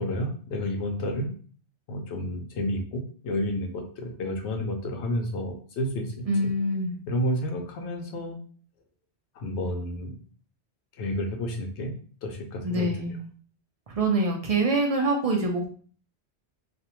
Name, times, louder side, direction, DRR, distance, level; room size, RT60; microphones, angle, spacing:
voice 1, 0.0-1.3 1.9-6.5 7.1-8.4 9.4-10.1 11.0-11.9 12.2-12.9, left 1 dB, 85° left, 3 dB, 0.9 m, -30 dB
voice 2, 6.3-6.9 12.6-13.2 13.9-15.7, right 2 dB, 60° right, 2 dB, 0.4 m, -25 dB
2.5 x 2.0 x 2.8 m, 0.43 s
omnidirectional pair, 1.1 m